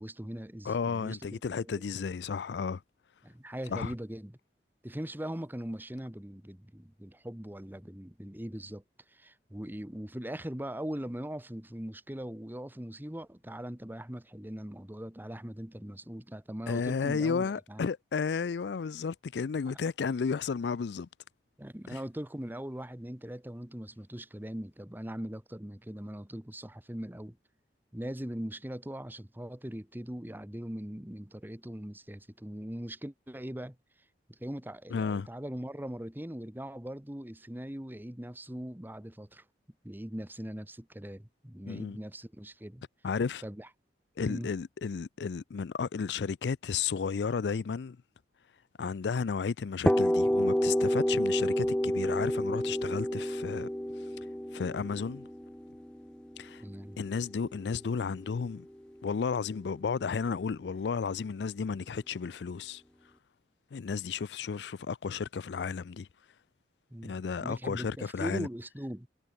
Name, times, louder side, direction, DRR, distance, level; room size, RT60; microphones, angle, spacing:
voice 1, 0.0-1.7 3.2-4.4 4.8-8.8 9.1-17.8 21.6-27.4 27.9-33.8 34.3-39.4 39.8-42.8 43.4-43.7 44.2-44.5 56.6-57.0 66.9-69.1, equal, 10° right, 1.3 m, -40 dB
voice 2, 0.7-2.8 3.7-3.9 16.7-21.1 21.9-22.0 34.9-35.3 41.6-42.0 43.0-43.4 44.2-48.0 48.8-53.7 54.0-54.1 54.5-55.3 56.4-56.6 57.0-58.7 59.0-62.8 63.7-66.1 67.0-68.5, left 5 dB, 70° left, 0.4 m, -33 dB
sound 1, 49.9-57.6, equal, 5° left, 0.6 m, -29 dB
head